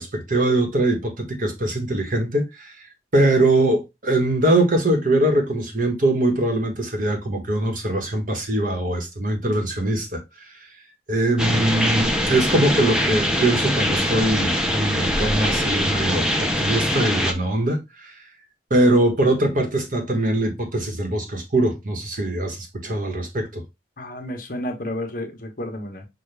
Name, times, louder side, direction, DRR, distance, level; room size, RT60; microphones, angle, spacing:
voice 1, 0.0-2.7 3.1-10.6 11.1-18.1 18.7-23.6, right 1 dB, 50° right, 1.2 m, -22 dB
sound 1, 11.4-17.3, equal, 5° right, 0.6 m, -22 dB
voice 2, 24.0-26.1, left 1 dB, 50° left, 1.1 m, -31 dB
5.9 x 2.4 x 3.3 m
head